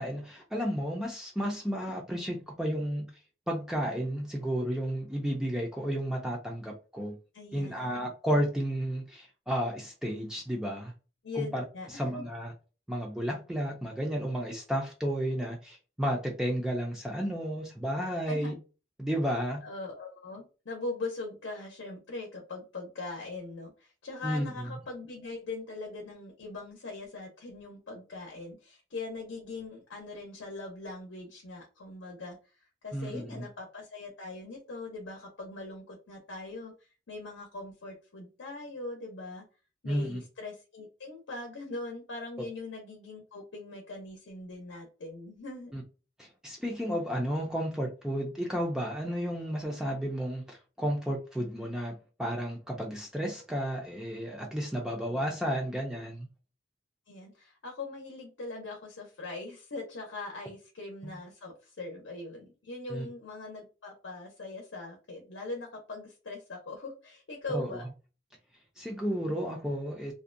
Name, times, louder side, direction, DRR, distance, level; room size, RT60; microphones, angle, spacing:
voice 1, 0.0-3.1 3.5-7.2 7.5-10.9 11.4-12.5 12.9-18.5 19.0-19.6 24.2-24.5 32.9-33.5 39.8-40.2 45.7-45.8 46.2-56.3 61.0-61.2 62.9-63.1 67.5-67.7 68.8-70.1, equal, 5° right, 0.3 m, -32 dB
voice 2, 7.3-8.1 11.2-12.1 18.3-18.5 19.6-39.4 39.8-45.7 54.8-55.1 57.1-67.8, left 3 dB, 85° left, 0.7 m, -41 dB
2.5 x 2.1 x 2.5 m
head